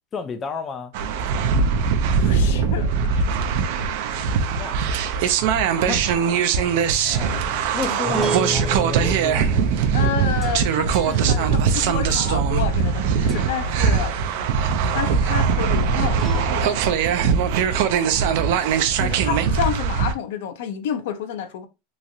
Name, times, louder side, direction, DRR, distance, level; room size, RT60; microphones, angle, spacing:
voice 1, 0.1-0.9 4.6-4.8 5.8-6.0 7.1-9.8, left 5 dB, 25° left, 0.3 m, -32 dB
sound 1, 0.9-20.1, right 6 dB, 65° right, 0.4 m, -21 dB
voice 2, 2.2-3.3 3.8-3.9 7.9-8.0 9.8-14.2 14.9-16.8 19.0-21.7, left 9 dB, 80° left, 0.5 m, -30 dB
sound 2, 6.6-13.0 13.3-13.7 16.0-17.0, right 2 dB, 10° right, 0.6 m, -33 dB
2.9 x 2.3 x 2.6 m
supercardioid pair, 150°, 0 cm